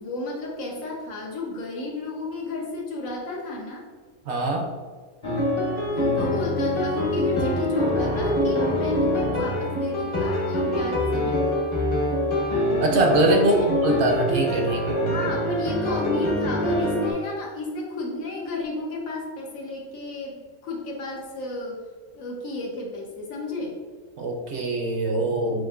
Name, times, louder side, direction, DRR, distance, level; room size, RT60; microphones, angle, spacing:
voice 1, 0.0-3.9 5.9-11.4 13.3-13.7 15.1-21.8 22.1-23.8, left 3 dB, 85° left, -1 dB, 1.4 m, -32 dB
voice 2, 4.3-4.7 11.2-11.3 12.8-13.5 13.8-15.1 24.2-25.7, right 2 dB, 60° right, 2 dB, 0.9 m, -23 dB
sound 1, 5.2-17.1, left 1 dB, 30° left, 0.6 m, -25 dB
7.3 x 2.6 x 2.5 m, 1.5 s
omnidirectional pair, 1.4 m